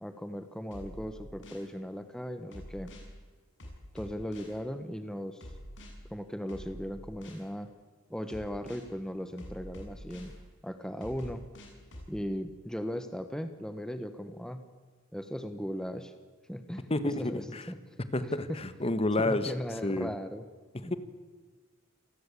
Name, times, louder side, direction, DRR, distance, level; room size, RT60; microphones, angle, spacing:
voice 1, 0.0-2.9 3.9-5.5 6.1-7.7 8.1-10.3 10.6-11.4 12.1-14.6 15.1-16.1 16.5-17.8 18.2-18.6 19.2-20.4 20.8-20.9, equal, 5° left, 8 dB, 1.2 m, -37 dB
sound 1, 0.7-1.7 2.5-3.1 3.6-4.6 5.4-5.9 6.5-7.5 8.3-8.9 9.4-10.3 11.0-12.1, equal, 55° left, 7.4 m, -46 dB
voice 2, 16.9-17.7 18.1-19.5 19.8-20.1 20.9-21.0, left 2 dB, 25° left, 12 dB, 1.4 m, -29 dB
28.0 x 19.0 x 8.5 m, 1.5 s
head